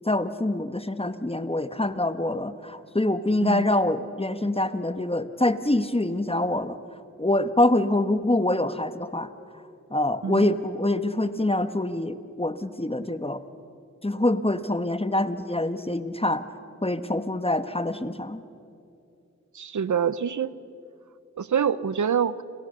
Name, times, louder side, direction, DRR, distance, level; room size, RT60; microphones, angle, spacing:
voice 1, 0.0-6.8 7.2-9.3 9.9-13.4 14.0-16.4 16.8-18.4, left 1 dB, 20° left, 11 dB, 1.4 m, -25 dB
voice 2, 19.5-20.5 21.4-22.4, right 7 dB, 80° right, 17 dB, 0.8 m, -25 dB
29.5 x 28.0 x 6.8 m, 2.6 s
wide cardioid pair, 50°, 30 cm